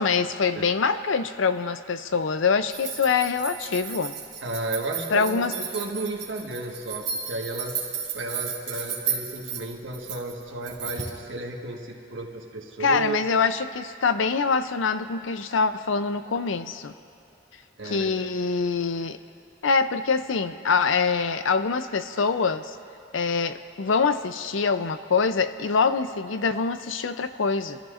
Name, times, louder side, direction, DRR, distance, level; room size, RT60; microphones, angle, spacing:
voice 1, 0.0-4.1 5.1-5.5 12.8-16.9 17.8-19.2 19.6-22.8 23.1-27.8, left 5 dB, 85° left, 11 dB, 0.6 m, -24 dB
sound 1, 2.7-11.2, right 7 dB, 35° right, 2.3 m, -34 dB
voice 2, 4.4-7.8 8.1-13.2 17.8-18.1, right 2 dB, 75° right, -2 dB, 1.5 m, -33 dB
29.0 x 15.0 x 2.5 m, 2.8 s
head